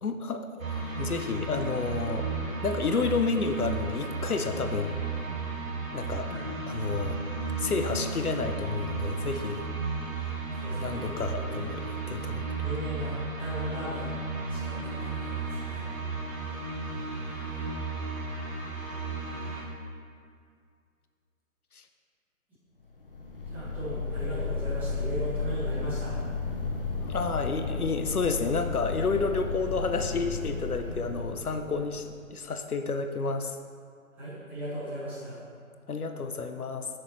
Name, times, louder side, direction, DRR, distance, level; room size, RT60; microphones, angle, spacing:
voice 1, 0.0-2.3 2.6-5.0 5.9-6.4 6.7-7.2 7.6-9.6 10.2-10.3 10.8-11.8 12.1-12.4 21.7-21.8 27.0-33.6 35.9-36.9, left 4 dB, 80° left, 6 dB, 0.8 m, -30 dB
sound 1, 0.6-19.6, right 4 dB, 65° right, 1.9 m, -34 dB
voice 2, 10.5-11.7 12.6-14.1 14.5-15.8 23.5-26.2 34.2-35.4, right 1 dB, 5° right, -14 dB, 1.6 m, -37 dB
sound 2, 23.0-32.3, left 4 dB, 40° left, 0.6 m, -33 dB
9.6 x 6.4 x 3.2 m, 2.2 s
figure-of-eight pair, 150°, 43 cm